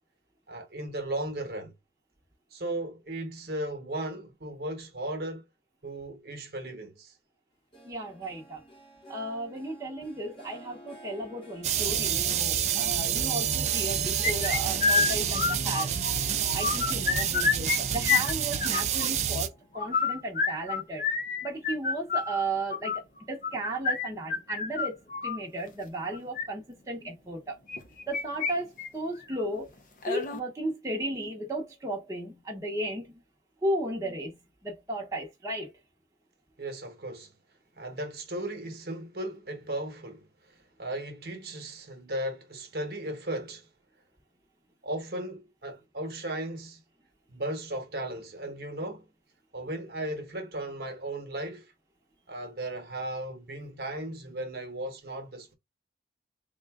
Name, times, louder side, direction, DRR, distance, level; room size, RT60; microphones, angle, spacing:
voice 1, 0.5-1.7 2.5-5.4 5.8-7.1 36.6-37.3 37.8-43.7 44.8-46.8 47.3-49.1 49.5-51.7 52.3-55.5, right 1 dB, 55° right, 1.0 m, -36 dB
Harp, 7.7-20.5 20.9-21.3 21.8-21.9, equal, 30° left, 1.1 m, -50 dB
voice 2, 7.8-8.6 9.1-15.9 16.5-21.1 21.4-27.6 28.1-29.7 30.0-33.2 33.6-35.7, right 1 dB, 15° right, 0.8 m, -35 dB
sound 1, 11.6-19.5, right 9 dB, 40° right, 0.4 m, -28 dB
sound 2, 14.2-16.1 16.5-17.8 18.0-19.1 19.7-25.4 26.1-26.4 27.7-28.5 28.8-28.9 29.3-29.4 30.0-30.4, left 5 dB, 45° left, 0.6 m, -28 dB
3.8 x 2.2 x 3.4 m
head